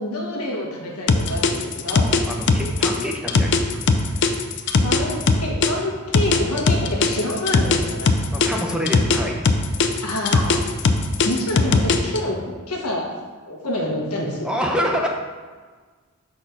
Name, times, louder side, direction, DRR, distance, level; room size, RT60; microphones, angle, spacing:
voice 1, 0.0-2.1 4.8-8.1 10.0-10.6 11.2-13.0 13.4-14.5, left 1 dB, 90° left, -1 dB, 1.4 m, -27 dB
sound 1, 1.1-5.7 6.1-9.2 9.4-12.2, left 4 dB, 55° left, 0.4 m, -18 dB
voice 2, 1.9-3.8 4.1-4.3 8.3-9.4 14.4-15.1, equal, 5° right, 1 dB, 0.7 m, -26 dB
5.2 x 4.3 x 5.8 m, 1.5 s
head